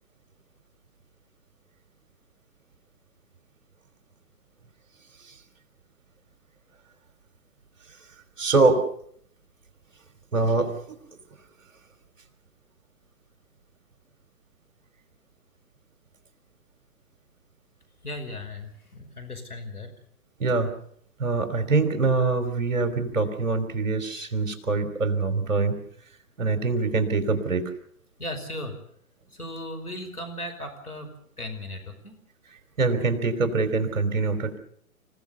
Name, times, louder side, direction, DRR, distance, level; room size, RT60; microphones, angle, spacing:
voice 1, 8.4-8.8 10.3-10.7 20.4-20.7 21.2-25.8 26.4-27.7 32.8-34.6, right 3 dB, 60° right, 8 dB, 3.5 m, -24 dB
voice 2, 18.0-19.9 28.2-28.8 29.3-31.1 31.4-32.2, left 1 dB, 80° left, 6 dB, 5.4 m, -36 dB
27.0 x 16.5 x 7.0 m, 0.64 s
figure-of-eight pair, 120°, 44 cm